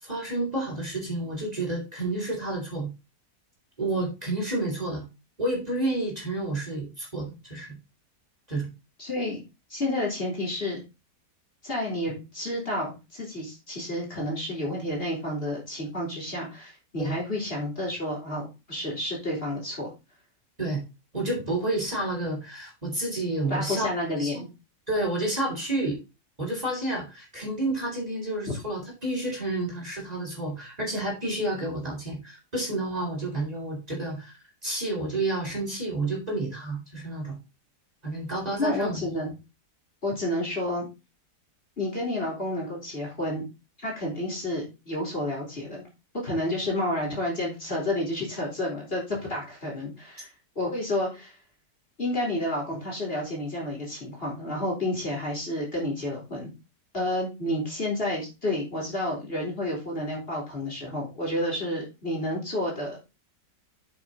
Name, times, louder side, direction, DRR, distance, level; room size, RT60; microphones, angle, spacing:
voice 1, 0.0-2.9 3.8-5.0 5.4-7.7 8.5-8.7 17.0-17.2 20.6-20.8 21.1-23.9 24.2-24.3 24.9-26.0 26.4-37.4 38.0-39.2, right 2 dB, 25° right, -2 dB, 4.3 m, -30 dB
voice 2, 9.0-9.4 9.7-10.8 11.6-19.9 23.5-24.5 38.6-39.3 40.0-40.9 41.8-43.5 43.8-45.8 46.2-50.3 50.6-51.3 52.0-56.5 56.9-63.1, left 1 dB, 35° left, -3 dB, 4.3 m, -30 dB
8.4 x 7.2 x 4.0 m, 0.27 s
omnidirectional pair, 1.8 m